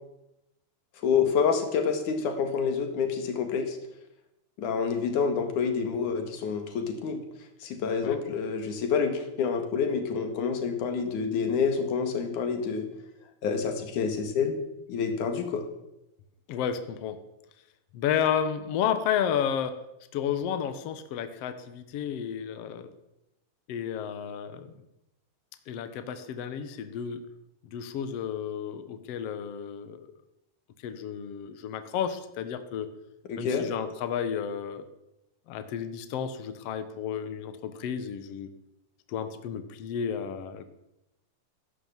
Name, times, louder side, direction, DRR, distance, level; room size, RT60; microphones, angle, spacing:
voice 1, 1.0-3.8 4.6-7.2 7.6-12.9 13.4-14.5 14.9-15.7 33.3-33.7, left 6 dB, 55° left, 6 dB, 2.9 m, -28 dB
voice 2, 16.5-17.2 17.9-19.8 20.1-22.9 23.7-24.7 25.7-27.2 27.7-30.0 30.8-32.9 33.4-34.8 35.5-38.5 39.1-40.6, left 8 dB, 85° left, 10 dB, 1.3 m, -32 dB
15.5 x 11.5 x 7.4 m, 0.89 s
omnidirectional pair, 4.6 m